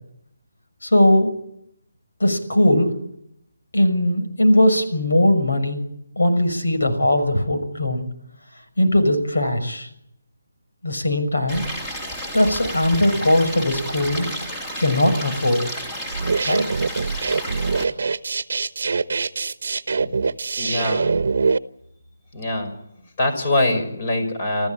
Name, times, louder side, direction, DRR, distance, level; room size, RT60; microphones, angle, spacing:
voice 1, 0.8-1.3 2.2-2.9 3.7-5.8 6.2-8.1 8.8-9.9 10.8-11.6 12.3-14.3 14.8-15.6 16.4-16.6, left 1 dB, 85° left, 6 dB, 6.3 m, -19 dB
Stream, 11.5-17.8, equal, 10° left, 2.8 m, -32 dB
sound 1, 16.1-21.6, right 4 dB, 60° right, 1.0 m, -23 dB
voice 2, 20.6-21.1 22.3-22.7 23.2-24.7, left 1 dB, 35° left, 7 dB, 5.6 m, -23 dB
27.0 x 14.5 x 9.1 m, 0.76 s
hypercardioid pair, 165°, 0 cm